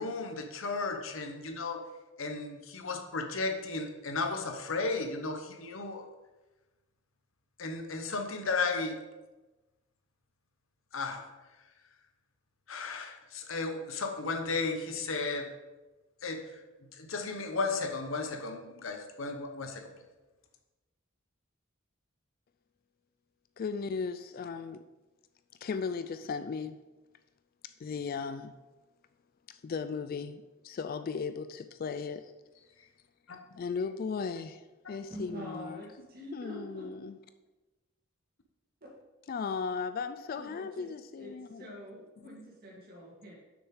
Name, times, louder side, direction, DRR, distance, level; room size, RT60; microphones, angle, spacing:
voice 1, 0.0-1.8 2.2-6.0 7.6-9.0 10.9-11.2 12.7-15.5 16.2-16.4 17.0-19.8 33.3-33.4 34.8-34.9, left 3 dB, 70° left, 0.9 m, -34 dB
voice 2, 23.6-24.8 25.6-26.8 27.8-28.6 29.5-32.2 33.5-35.8 36.3-37.2 39.3-41.8 42.2-42.3, left 5 dB, 45° left, 0.3 m, -36 dB
voice 3, 35.1-36.9 38.8-38.9 40.4-40.9 41.1-43.3, equal, 45° right, 2.3 m, -46 dB
6.5 x 6.2 x 4.9 m
head